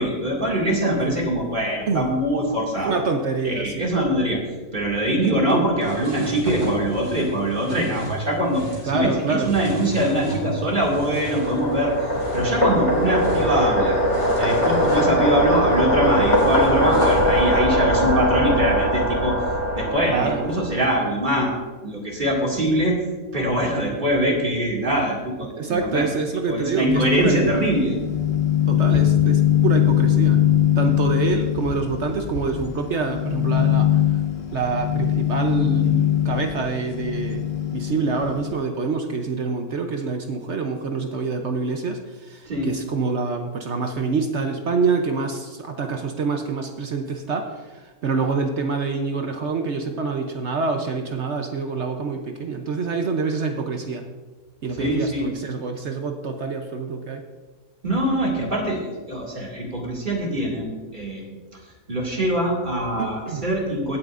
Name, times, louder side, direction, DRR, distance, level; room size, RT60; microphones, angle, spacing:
voice 1, 0.0-3.0 3.4-4.4 4.7-8.6 8.9-14.0 14.4-19.4 19.7-23.0 23.3-26.1 26.5-27.9 42.5-42.7 54.8-55.2 57.8-61.6 61.9-64.0, right 1 dB, 30° right, -2 dB, 2.3 m, -23 dB
voice 2, 2.8-3.9 5.2-5.7 8.9-9.5 20.1-20.5 25.5-27.6 28.7-30.4 30.8-34.2 34.5-37.4 37.7-54.1 54.6-57.2 63.0-63.5, right 4 dB, 55° right, 5 dB, 0.8 m, -26 dB
sound 1, 5.8-17.6, right 2 dB, 80° right, 4.2 m, -35 dB
sound 2, 10.2-20.9, equal, 20° left, 2.3 m, -21 dB
sound 3, 26.9-38.5, left 11 dB, 45° left, 1.1 m, -22 dB
16.5 x 8.8 x 2.5 m, 1.3 s
omnidirectional pair, 1.7 m